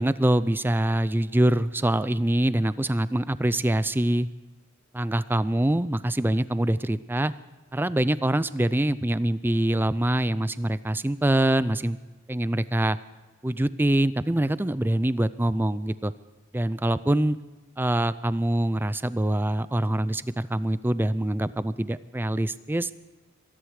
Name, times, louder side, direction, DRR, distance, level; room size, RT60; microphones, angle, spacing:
voice 1, 0.0-4.3 4.9-7.3 7.7-12.0 12.3-13.0 13.4-16.1 16.5-17.4 17.8-22.9, right 1 dB, 10° right, 15 dB, 0.4 m, -24 dB
25.0 x 11.0 x 4.9 m, 1.3 s
head